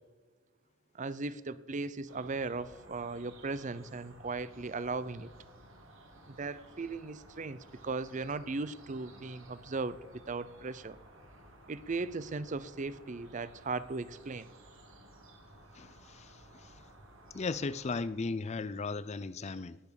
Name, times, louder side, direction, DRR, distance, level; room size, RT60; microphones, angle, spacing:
voice 1, 0.9-5.3 6.3-11.0 11.7-14.5, right 3 dB, 35° right, 0.5 m, -37 dB
sound 1, 2.1-18.1, right 1 dB, 65° right, 2.8 m, -56 dB
voice 2, 15.8-16.7 17.3-19.8, left 4 dB, 30° left, 0.4 m, -36 dB
18.5 x 8.5 x 7.0 m
head